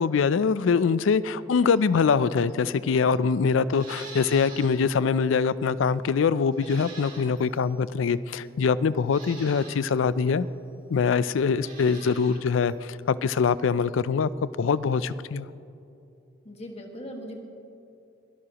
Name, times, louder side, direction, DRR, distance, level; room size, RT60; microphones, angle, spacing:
voice 1, 0.0-10.5 10.9-14.3 14.6-15.5, left 5 dB, 90° left, 17 dB, 0.4 m, -23 dB
Livestock farm animals working animals, 3.7-4.8 5.2-5.3 6.5-7.6 8.4-8.5 9.0-9.8 11.5-12.4 12.7-12.8, right 4 dB, 45° right, 3.2 m, -44 dB
voice 2, 16.4-17.4, equal, 35° left, 2 dB, 1.5 m, -39 dB
22.0 x 12.5 x 2.9 m, 2.7 s
head